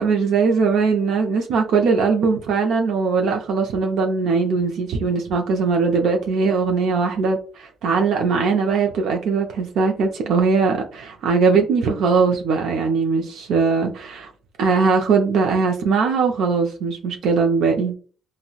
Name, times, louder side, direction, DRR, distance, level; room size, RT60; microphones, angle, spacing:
voice 1, 0.0-14.3 14.6-17.9, right 5 dB, 80° right, 3 dB, 0.4 m, -20 dB
3.7 x 2.1 x 2.3 m, 0.40 s
supercardioid pair, 65°, 0 cm